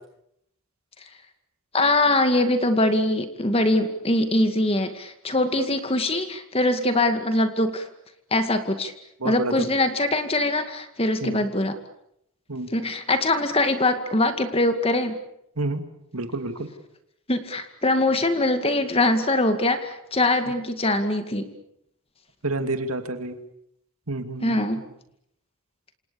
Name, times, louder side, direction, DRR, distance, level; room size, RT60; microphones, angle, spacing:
voice 1, 1.7-7.9 8.3-8.9 9.2-11.7 12.7-15.2 17.3-21.5 24.4-24.8, left 2 dB, 25° left, 8 dB, 2.2 m, -22 dB
voice 2, 9.2-9.5 11.2-11.4 12.5-12.7 15.6-15.8 16.1-16.7 22.4-23.4 24.1-24.7, right 2 dB, 75° right, 7 dB, 2.7 m, -29 dB
27.5 x 27.5 x 7.1 m, 0.76 s
head